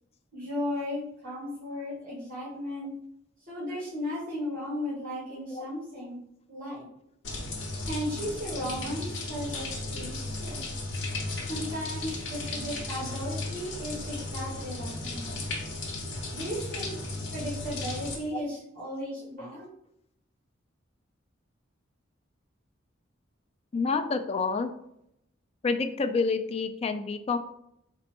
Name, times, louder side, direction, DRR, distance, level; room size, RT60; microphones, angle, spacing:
voice 1, 0.3-2.9 3.5-6.2 6.5-6.8 7.9-10.6 11.5-15.4 16.3-17.0 17.3-19.7, equal, 45° right, -8 dB, 1.5 m, -35 dB
sound 1, 7.2-18.2, left 2 dB, 65° left, 0.9 m, -35 dB
voice 2, 23.7-24.7 25.6-27.4, left 4 dB, 30° left, 8 dB, 0.3 m, -28 dB
4.1 x 2.1 x 4.4 m, 0.77 s
head